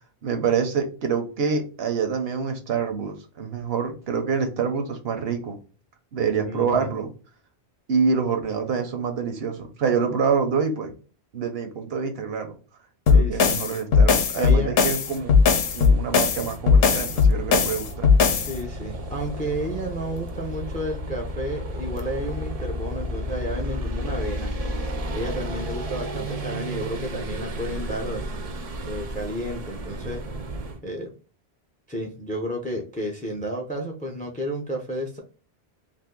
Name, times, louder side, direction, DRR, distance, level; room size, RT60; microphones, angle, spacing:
voice 1, 0.2-5.6 6.1-7.1 7.9-11.0 11.3-12.5 13.1-15.3 15.7-18.1, right 5 dB, 70° right, 6 dB, 0.9 m, -26 dB
voice 2, 6.5-6.9 13.1-13.7 14.3-14.7 18.3-24.5 25.1-28.3 28.8-30.2 30.8-31.1 31.9-35.2, equal, 10° left, 2 dB, 0.4 m, -31 dB
sound 1, 13.1-18.5, left 5 dB, 70° left, 0.8 m, -18 dB
sound 2, 15.0-30.8, equal, 45° right, 0.5 m, -33 dB
2.6 x 2.5 x 3.6 m, 0.37 s
omnidirectional pair, 1.1 m